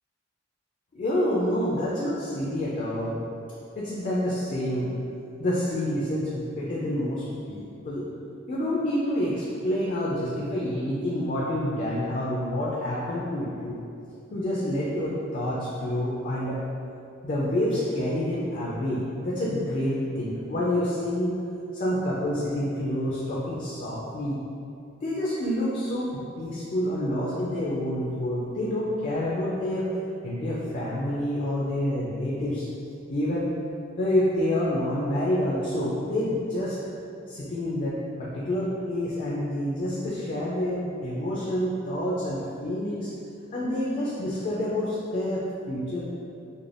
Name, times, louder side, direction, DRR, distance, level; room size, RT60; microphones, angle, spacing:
voice 1, 0.9-3.2 3.8-4.9 5.4-8.1 8.5-13.8 14.3-16.6 17.2-21.4 21.7-24.4 25.0-29.9 30.2-32.7 33.1-33.5 34.0-36.8 37.3-43.1 43.5-46.0, left 1 dB, 40° left, -6 dB, 0.3 m, -28 dB
2.4 x 2.1 x 3.2 m, 2.6 s
head